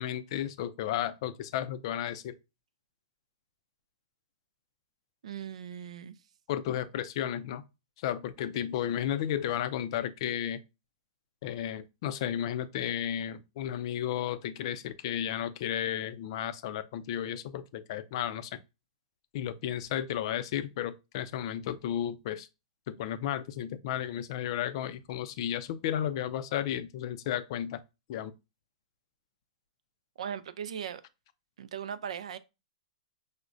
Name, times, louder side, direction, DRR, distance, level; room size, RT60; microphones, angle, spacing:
voice 1, 0.0-2.3 6.5-7.6 8.0-10.6 11.4-18.6 19.3-22.5 22.9-27.8 28.1-28.3, left 10 dB, 55° left, 0.4 m, -33 dB
voice 2, 5.2-6.1 30.2-31.0 31.6-32.4, right 8 dB, 75° right, 0.3 m, -38 dB
4.8 x 2.1 x 2.5 m
hypercardioid pair, 130°, 3 cm